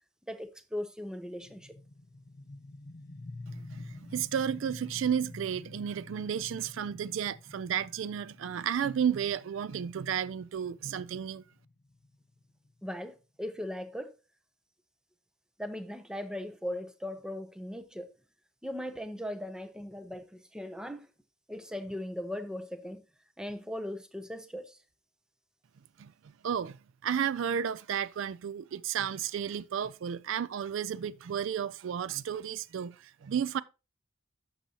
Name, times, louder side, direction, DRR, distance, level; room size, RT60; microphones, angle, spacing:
voice 1, 0.3-1.7 12.8-14.1 15.6-18.1 18.6-21.1 21.5-23.0 23.4-24.8, left 1 dB, 5° right, 0.6 m, -38 dB
sound 1, 1.4-12.9, left 2 dB, 45° left, 0.8 m, -48 dB
voice 2, 3.6-11.4 26.0-26.1 26.4-26.8 27.0-33.6, right 8 dB, 65° right, 0.3 m, -32 dB
11.5 x 6.8 x 2.8 m
head